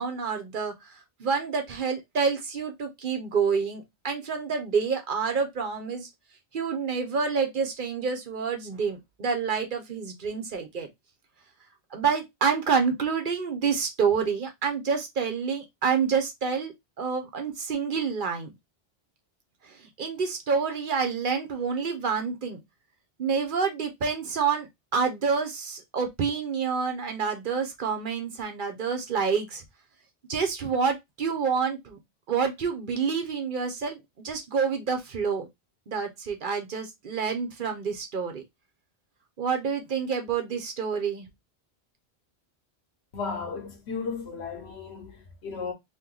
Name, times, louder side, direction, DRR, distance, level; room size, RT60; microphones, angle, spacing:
voice 1, 0.0-6.1 6.5-10.9 11.9-18.5 19.6-22.6 23.2-29.6 30.3-32.0 32.3-34.0 34.2-35.5 35.9-38.4 39.4-41.3, right 5 dB, 55° right, 0.8 m, -28 dB
voice 2, 43.1-45.7, left 5 dB, 80° left, 1.2 m, -35 dB
2.9 x 2.6 x 3.7 m
omnidirectional pair, 1.1 m